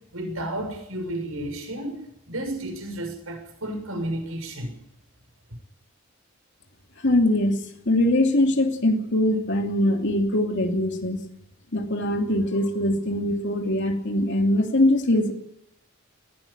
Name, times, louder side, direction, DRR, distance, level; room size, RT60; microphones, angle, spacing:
voice 1, 0.1-4.7, right 1 dB, 85° right, 6.9 m, -32 dB
voice 2, 7.0-7.6 7.9-11.2 11.7-15.3, left 1 dB, 60° left, 2.9 m, -22 dB
20.0 x 15.5 x 8.8 m
head